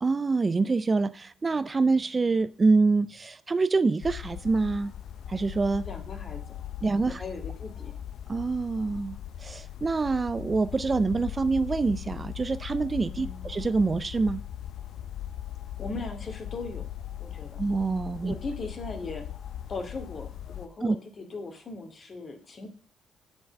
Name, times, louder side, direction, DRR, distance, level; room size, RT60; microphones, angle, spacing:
voice 1, 0.0-4.9 5.3-5.9 6.8-7.2 8.3-14.4 17.6-18.3 20.8-21.0, right 3 dB, 30° right, 0.5 m, -26 dB
sound 1, 4.0-20.7, left 11 dB, 65° left, 0.7 m, -39 dB
voice 2, 5.8-6.6 7.0-8.0 13.1-13.5 15.8-16.9 17.2-17.6 18.2-19.3 19.7-22.7, left 3 dB, 45° left, 2.3 m, -38 dB
7.6 x 7.1 x 5.2 m
cardioid pair, 90°, 0 cm